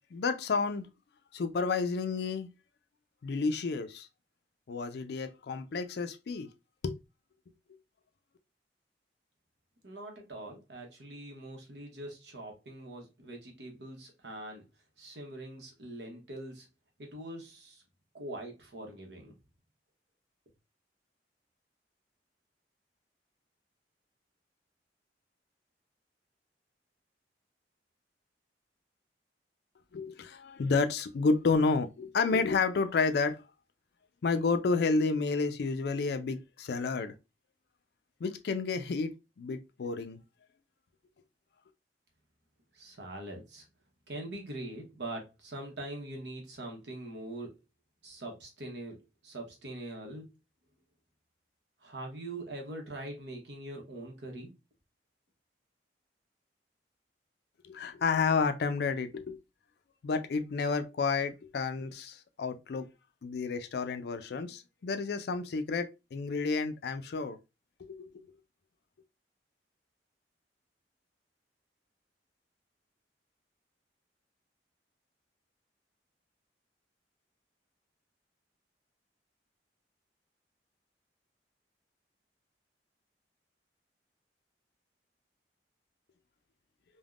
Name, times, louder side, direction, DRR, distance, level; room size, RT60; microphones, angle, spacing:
voice 1, 0.1-0.9 1.3-2.5 3.2-4.1 4.7-6.5 6.8-7.0 29.9-33.4 34.2-37.1 38.2-39.1 39.4-40.2 57.6-59.4 60.0-62.9 63.2-67.4 67.9-68.1, left 4 dB, 65° left, 0.4 m, -30 dB
voice 2, 9.8-14.6 15.0-16.7 17.0-17.8 18.1-19.3 42.7-43.6 44.1-47.5 48.0-49.0 49.2-50.2 51.8-54.5, right 1 dB, 75° right, 0.9 m, -43 dB
3.4 x 2.2 x 2.3 m
head